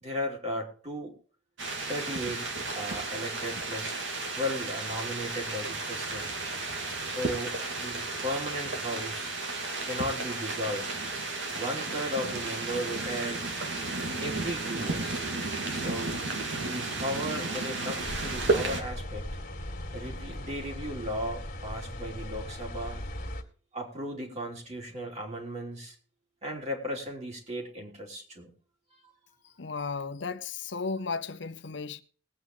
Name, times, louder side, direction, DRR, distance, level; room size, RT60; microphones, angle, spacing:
voice 1, 0.0-1.1 1.9-4.0 4.3-6.3 7.0-9.3 9.8-10.9 11.5-13.4 14.2-15.2 15.7-16.1 16.6-19.4 19.9-23.0 23.7-26.0 26.4-28.5 29.0-29.4, equal, 35° right, 3.4 m, -36 dB
sound 1, 1.6-18.8, right 3 dB, 80° right, 2.6 m, -33 dB
sound 2, 18.0-23.4, left 1 dB, 50° left, 2.2 m, -38 dB
voice 2, 29.6-32.0, left 4 dB, 70° left, 0.8 m, -34 dB
20.5 x 8.7 x 3.2 m
head